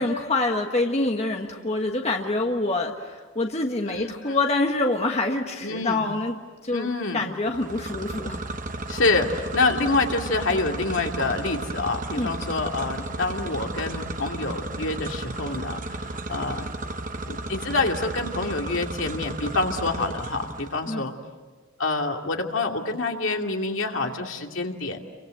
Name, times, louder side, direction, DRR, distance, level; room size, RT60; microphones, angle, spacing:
voice 1, 0.0-6.4 6.6-6.9 7.1-8.4 12.2-12.3 20.9-21.0, left 2 dB, 30° left, 2 dB, 1.4 m, -26 dB
voice 2, 3.9-4.4 5.6-6.0 6.7-7.2 8.9-16.7 17.3-21.1 21.8-25.0, left 3 dB, 70° left, 2 dB, 2.6 m, -27 dB
sound 1, 7.5-20.8, right 2 dB, 40° right, 1.1 m, -34 dB
29.5 x 24.5 x 7.9 m, 1.4 s
head